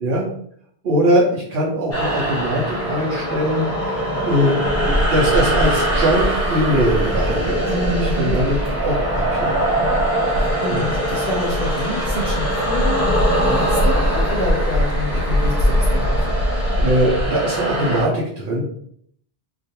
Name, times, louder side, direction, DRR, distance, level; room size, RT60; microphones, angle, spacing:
voice 1, 0.8-4.0 4.2-4.6 4.8-7.9 8.2-8.9 9.3-9.8 10.7-10.9 16.8-18.6, equal, 70° right, -6 dB, 0.8 m, -21 dB
sound 1, 1.9-18.1, right 1 dB, 20° left, 0.4 m, -23 dB
sound 2, 4.6-17.3, equal, 85° left, 0.8 m, -23 dB
voice 2, 7.7-8.4 10.3-16.3, left 1 dB, 60° left, -3 dB, 0.7 m, -27 dB
2.4 x 2.2 x 2.8 m, 0.65 s
omnidirectional pair, 1.1 m